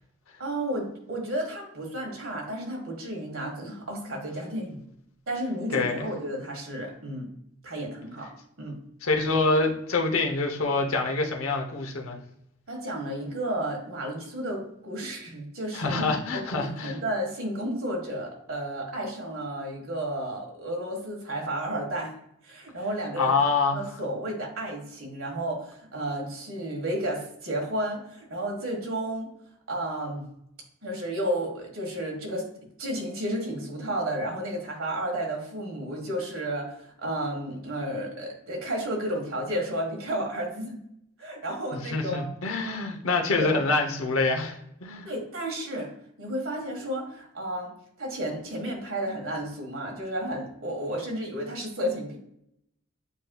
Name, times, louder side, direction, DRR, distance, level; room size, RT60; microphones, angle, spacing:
voice 1, 0.4-4.8 5.3-7.3 7.6-8.3 8.6-8.8 12.7-16.0 16.3-22.1 22.4-23.3 23.7-29.3 29.7-30.3 30.8-32.4 32.8-40.8 41.2-42.2 43.4-43.5 45.0-45.9 46.2-52.2, right 1 dB, 75° right, -1 dB, 1.5 m, -32 dB
voice 2, 5.7-6.1 9.0-12.2 15.7-17.0 23.2-23.8 41.7-45.1, left 3 dB, 85° left, 2 dB, 0.8 m, -26 dB
8.2 x 2.8 x 2.3 m, 0.75 s
head